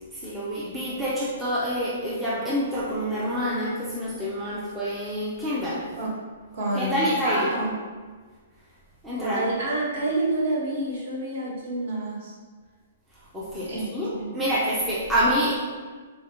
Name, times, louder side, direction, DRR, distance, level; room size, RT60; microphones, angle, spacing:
voice 1, 0.0-5.9 6.7-7.5 9.0-9.5 13.3-15.6, equal, 5° right, -8 dB, 0.4 m, -27 dB
voice 2, 6.5-7.7 9.2-12.3 13.7-14.3, right 2 dB, 50° right, -4 dB, 1.2 m, -28 dB
3.8 x 3.5 x 2.8 m, 1.5 s
hypercardioid pair, 175°, 0 cm